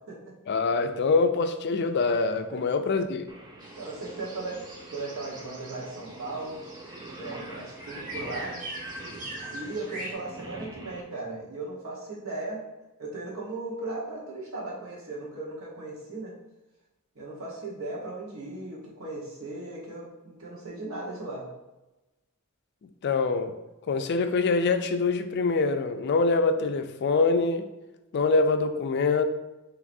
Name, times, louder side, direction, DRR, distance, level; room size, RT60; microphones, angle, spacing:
voice 1, 0.5-3.3 22.8-23.5 23.9-27.7 28.1-29.2, left 4 dB, 50° left, 8 dB, 0.3 m, -24 dB
Singing, 3.3-11.0, right 2 dB, 20° right, 0.5 m, -45 dB
sound 1, 3.6-10.1, right 1 dB, 40° right, 1.3 m, -42 dB
voice 2, 3.8-4.6 4.9-6.6 7.2-8.6 9.5-12.6 13.0-16.3 17.1-21.5, right 2 dB, 75° right, -4 dB, 1.3 m, -37 dB
5.9 x 3.0 x 2.6 m, 1.0 s
head